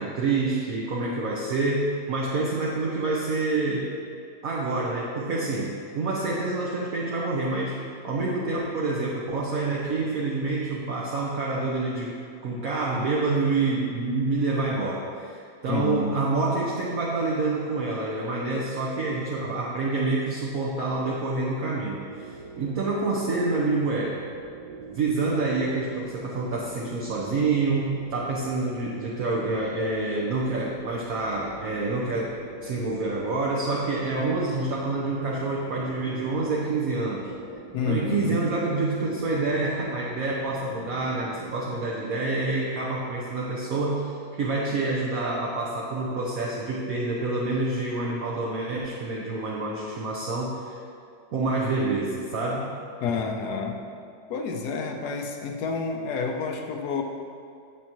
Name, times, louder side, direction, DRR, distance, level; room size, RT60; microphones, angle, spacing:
voice 1, 0.0-3.9 4.4-7.8 8.0-12.1 12.4-24.2 24.9-32.3 32.6-37.3 37.8-50.8 51.3-52.7, right 3 dB, 60° right, -4 dB, 1.3 m, -27 dB
voice 2, 15.7-16.1 37.7-38.4 53.0-53.8 54.3-57.0, left 5 dB, 70° left, 3 dB, 1.3 m, -29 dB
sound 1, 22.0-41.8, right 3 dB, 75° right, 1.7 m, -44 dB
9.8 x 8.0 x 3.0 m, 2.3 s
omnidirectional pair, 1.9 m